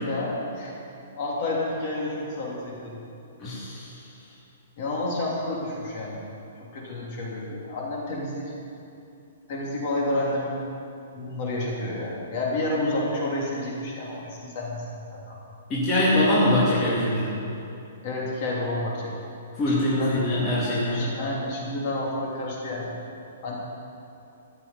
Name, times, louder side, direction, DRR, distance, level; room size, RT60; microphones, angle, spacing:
voice 1, 0.0-0.8 1.1-3.0 4.8-6.2 6.6-8.5 9.5-10.6 11.1-15.4 18.0-19.1 19.7-20.2 20.9-22.9 23.4-23.5, left 2 dB, 30° left, -4 dB, 3.2 m, -30 dB
voice 2, 3.4-3.9 15.7-17.3 19.5-21.0, left 1 dB, 15° left, -9 dB, 2.3 m, -23 dB
14.5 x 7.5 x 9.5 m, 2.7 s
hypercardioid pair, 180°, 0 cm